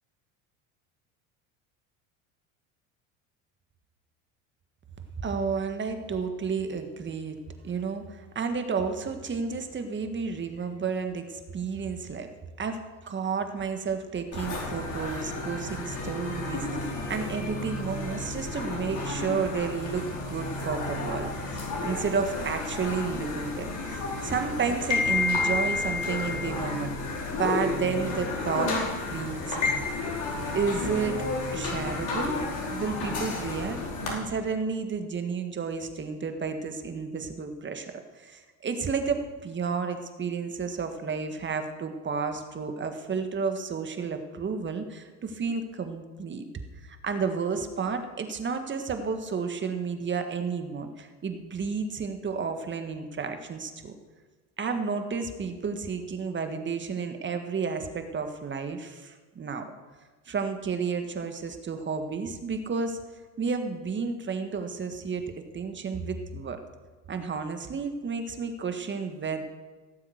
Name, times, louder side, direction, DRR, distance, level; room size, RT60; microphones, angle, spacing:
voice 1, 5.2-7.4 7.6-12.3 12.6-28.8 29.0-29.9 30.5-31.2 31.5-32.4 32.7-33.8 34.1-46.5 46.8-53.9 54.6-59.7 60.3-63.0 63.4-65.2 65.5-66.6 67.1-69.4, right 5 dB, 30° right, 7 dB, 1.7 m, -31 dB
sound 1, 14.3-34.1, left 3 dB, 50° left, 4.7 m, -31 dB
17.5 x 7.5 x 6.5 m, 1.3 s
hypercardioid pair, 85°, 40 cm